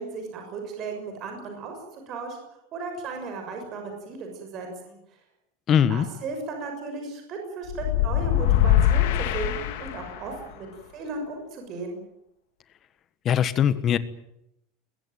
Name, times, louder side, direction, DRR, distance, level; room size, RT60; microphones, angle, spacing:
voice 1, 0.0-2.4 2.7-5.0 5.9-12.0, right 4 dB, 30° right, 4 dB, 6.4 m, -36 dB
voice 2, 5.7-6.1 13.2-14.0, left 9 dB, 25° left, 14 dB, 1.4 m, -21 dB
sound 1, 7.7-10.3, left 11 dB, 60° left, 3.6 m, -22 dB
22.5 x 21.5 x 9.2 m, 0.81 s
supercardioid pair, 170°, 0 cm